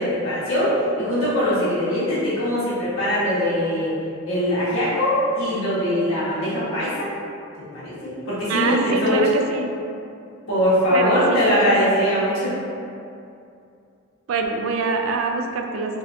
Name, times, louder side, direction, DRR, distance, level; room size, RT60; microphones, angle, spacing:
voice 1, 0.0-3.9 4.2-7.1 7.7-9.3 10.5-12.5, equal, 80° left, -11 dB, 1.3 m, -21 dB
voice 2, 8.5-9.7 10.9-11.7 14.3-16.0, right 4 dB, 75° right, 3 dB, 0.3 m, -24 dB
3.2 x 3.0 x 2.5 m, 2.5 s
head